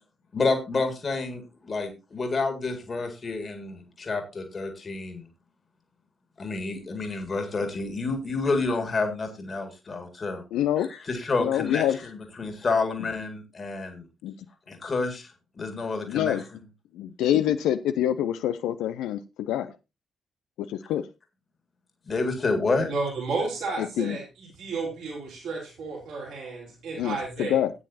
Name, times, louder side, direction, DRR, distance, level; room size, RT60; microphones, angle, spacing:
voice 1, 0.3-5.3 6.4-10.4 10.8-11.8 12.1-14.1 14.7-15.3 15.6-16.4 22.1-22.9, left 3 dB, 40° left, 5 dB, 2.1 m, -29 dB
voice 2, 10.5-10.9 11.4-12.0 14.2-14.3 16.1-16.4 16.9-19.7 20.7-21.1 23.8-24.2 26.9-27.7, left 11 dB, 65° left, 10 dB, 0.4 m, -26 dB
voice 3, 22.9-27.6, right 3 dB, 65° right, -2 dB, 4.1 m, -32 dB
14.5 x 9.0 x 2.8 m, 0.26 s
figure-of-eight pair, 40°, 0 cm